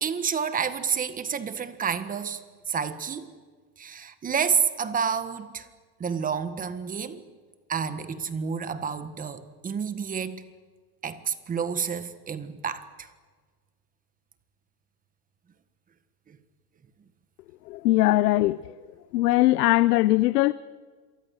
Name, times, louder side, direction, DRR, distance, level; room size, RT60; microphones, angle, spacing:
voice 1, 0.0-2.4 2.7-3.3 3.8-5.7 6.0-7.2 7.7-10.4 11.0-13.1 16.3-16.4, right 7 dB, 20° right, 1.6 m, -29 dB
voice 2, 17.7-18.6 19.1-20.5, left 17 dB, 80° left, 0.8 m, -20 dB
27.0 x 24.0 x 8.2 m
supercardioid pair, 150°, 46 cm